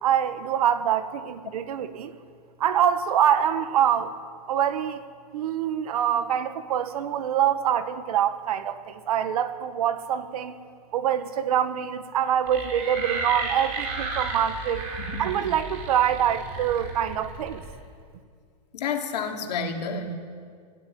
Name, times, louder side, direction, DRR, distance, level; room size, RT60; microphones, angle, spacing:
voice 1, 0.0-2.1 2.6-4.1 4.5-5.0 5.3-10.6 10.9-14.9 15.2-17.6, right 9 dB, 60° right, 10 dB, 1.6 m, -25 dB
sound 1, 12.5-17.7, right 3 dB, 30° right, 4.5 m, -33 dB
voice 2, 15.0-15.5 18.7-20.1, left 5 dB, 75° left, 3 dB, 3.0 m, -30 dB
19.0 x 16.5 x 9.4 m, 2.1 s
supercardioid pair, 180°, 21 cm